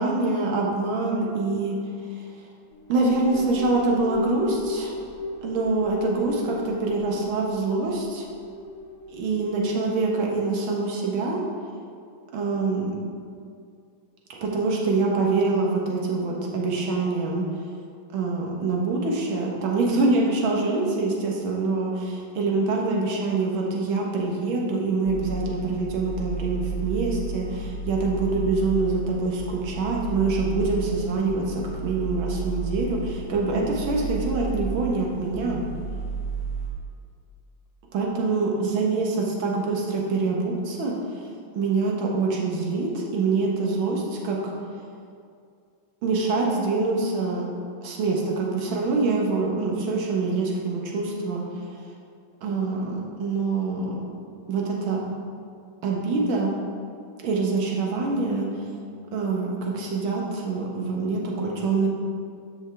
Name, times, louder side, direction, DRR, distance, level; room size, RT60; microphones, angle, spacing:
voice 1, 0.0-1.8 2.1-2.3 2.9-5.0 5.4-8.3 9.1-11.4 12.3-12.9 14.3-17.5 18.1-35.6 37.9-41.3 41.5-44.5 46.0-47.4 47.8-51.8 52.4-54.0 54.5-55.0 55.8-56.5 57.2-58.5 59.1-61.9, right 3 dB, 75° right, -1 dB, 2.0 m, -25 dB
sound 1, 2.7-10.3, left 2 dB, 75° left, 1.7 m, -36 dB
sound 2, 25.1-36.7, right 4 dB, 40° left, 2.5 m, -32 dB
13.0 x 5.4 x 3.4 m, 2.3 s
omnidirectional pair, 2.2 m